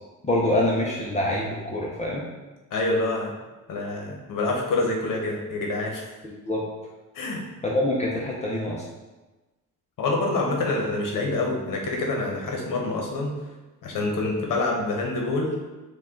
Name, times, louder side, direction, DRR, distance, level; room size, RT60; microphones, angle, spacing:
voice 1, 0.3-2.3 6.2-6.6 7.6-8.8, left 1 dB, 20° left, -4 dB, 0.4 m, -25 dB
voice 2, 2.7-3.3 3.7-6.1 7.1-7.4 10.0-13.3 13.8-15.6, left 2 dB, 65° left, 0 dB, 0.9 m, -26 dB
5.2 x 2.3 x 3.6 m, 1.2 s
cardioid pair, 180°, 35 cm